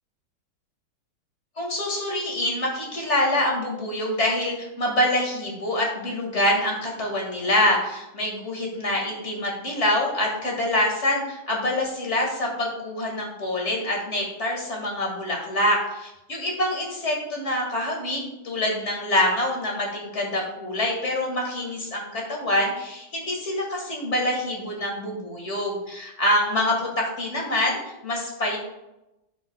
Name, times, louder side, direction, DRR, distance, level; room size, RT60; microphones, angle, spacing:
voice 1, 1.6-28.6, left 1 dB, 40° left, -1 dB, 2.4 m, -25 dB
12.5 x 7.8 x 2.4 m, 0.92 s
omnidirectional pair, 1.9 m